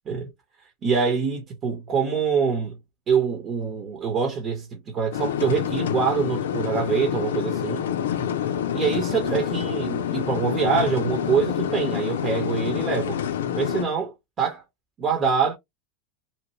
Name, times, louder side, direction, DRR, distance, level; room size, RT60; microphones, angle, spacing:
voice 1, 0.8-2.8 3.1-7.8 8.7-13.2 13.5-14.6 15.0-15.5, right 6 dB, 40° right, 1.1 m, -25 dB
sound 1, 5.1-13.9, left 9 dB, 80° left, 0.4 m, -27 dB
2.9 x 2.4 x 3.0 m
hypercardioid pair, 95°, 0 cm